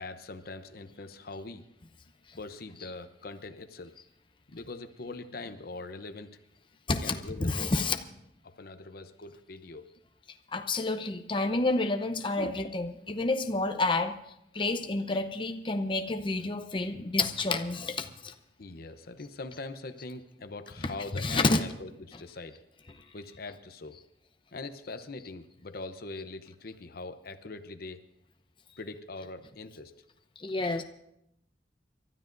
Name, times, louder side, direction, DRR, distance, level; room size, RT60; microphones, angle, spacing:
voice 1, 0.0-1.6 2.4-3.9 4.5-6.3 7.0-7.7 8.4-9.9 12.4-12.7 18.6-22.6 23.1-24.0 24.5-28.0 28.8-29.9, left 3 dB, 60° left, 9 dB, 0.8 m, -42 dB
voice 2, 6.9-8.0 10.5-14.1 14.5-18.3 21.1-21.6 30.4-30.8, left 2 dB, 30° left, 6 dB, 0.7 m, -29 dB
29.5 x 13.0 x 2.6 m, 0.80 s
head